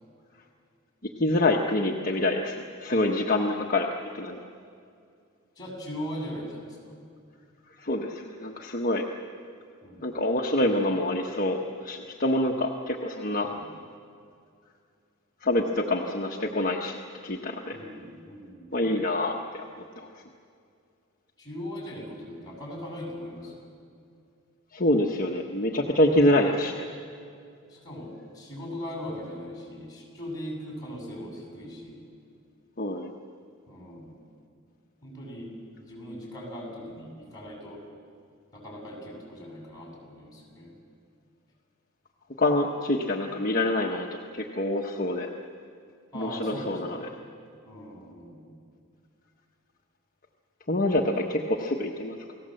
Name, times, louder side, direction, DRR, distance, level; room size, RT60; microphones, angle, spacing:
voice 1, 1.2-2.5 2.8-4.4 7.8-9.0 10.0-11.6 11.8-13.5 15.4-17.0 17.2-17.8 18.7-19.6 20.0-20.1 24.7-26.8 32.8-33.1 42.4-44.1 44.3-45.3 46.1-47.1 50.7-52.3, left 1 dB, 40° left, 0 dB, 1.3 m, -26 dB
voice 2, 5.6-6.9 9.8-10.1 13.4-13.6 17.7-19.2 21.4-23.6 27.7-32.0 33.7-34.2 35.0-35.5 35.8-37.8 38.5-40.8 46.1-47.1 47.7-48.5, equal, 20° left, -1 dB, 7.4 m, -39 dB
29.0 x 19.0 x 7.8 m, 2.4 s
head